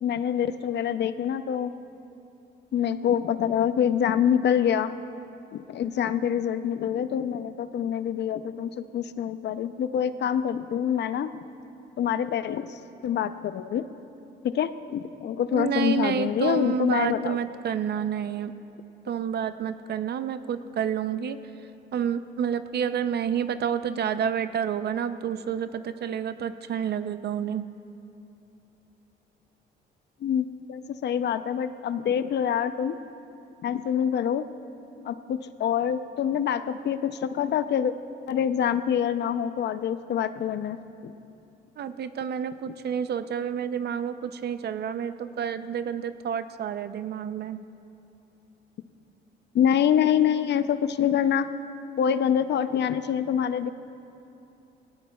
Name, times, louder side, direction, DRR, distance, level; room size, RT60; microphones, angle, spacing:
voice 1, 0.0-1.7 2.7-4.9 5.5-11.3 12.0-13.9 14.4-17.4 30.2-33.0 33.6-34.4 35.0-37.9 38.3-40.8 41.0-41.1 42.7-42.8 49.5-51.5 52.0-53.7, left 9 dB, 60° left, 12 dB, 0.6 m, -26 dB
voice 2, 15.5-18.5 19.1-21.4 21.9-27.7 41.8-47.6, right 8 dB, 55° right, 12 dB, 0.6 m, -29 dB
18.0 x 17.5 x 2.3 m, 2.9 s
cardioid pair, 90°, 20 cm